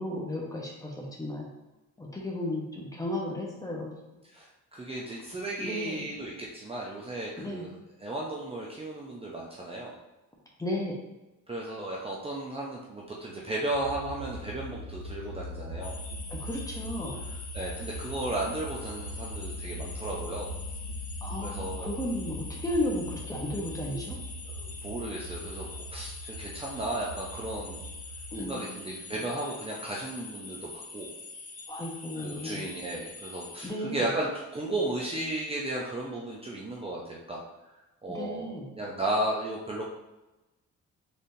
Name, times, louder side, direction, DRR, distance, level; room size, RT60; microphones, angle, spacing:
voice 1, 0.0-1.5 2.0-3.9 5.6-6.0 7.4-7.7 10.6-11.0 16.3-17.2 21.2-24.2 28.3-29.0 31.7-32.6 33.6-34.1 38.1-38.7, left 1 dB, 10° left, -2 dB, 1.0 m, -34 dB
voice 2, 4.3-7.7 8.0-9.9 11.5-16.0 17.5-20.5 21.4-21.9 24.4-27.8 28.4-31.1 32.2-37.4 38.0-38.5 38.8-39.9, right 1 dB, 20° right, -4 dB, 0.6 m, -34 dB
sound 1, 13.7-28.4, left 1 dB, 55° right, 0.7 m, -40 dB
sound 2, 15.8-33.7, left 4 dB, 30° left, 0.6 m, -44 dB
4.1 x 3.4 x 2.7 m, 1.0 s
cardioid pair, 90°, 30 cm